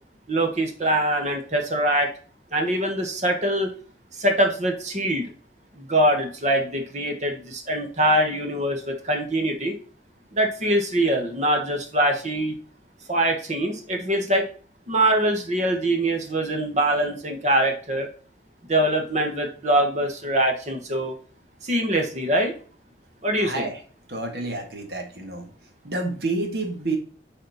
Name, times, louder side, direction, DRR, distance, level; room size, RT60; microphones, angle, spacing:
voice 1, 0.3-2.1 2.5-3.7 4.2-5.2 5.8-9.8 10.3-12.6 13.1-14.5 14.9-18.1 18.7-21.2 21.6-22.5 23.2-23.7, right 1 dB, 40° right, 3 dB, 1.3 m, -23 dB
voice 2, 23.4-23.8 24.1-25.5 25.8-27.0, right 2 dB, 65° right, 4 dB, 1.6 m, -29 dB
7.3 x 4.3 x 4.1 m, 0.41 s
head